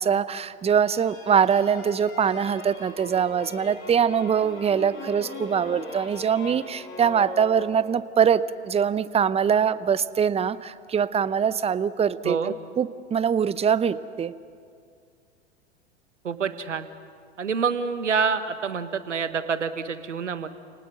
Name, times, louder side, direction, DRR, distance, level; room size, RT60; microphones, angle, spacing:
voice 1, 0.0-14.3, right 7 dB, 15° right, 16 dB, 0.7 m, -23 dB
sound 1, 0.8-8.0, left 4 dB, 35° left, 4.2 m, -40 dB
voice 2, 16.2-16.9 17.4-20.5, right 5 dB, 85° right, 11 dB, 1.4 m, -27 dB
30.0 x 19.5 x 6.6 m, 2.2 s
hypercardioid pair, 90°, 35 cm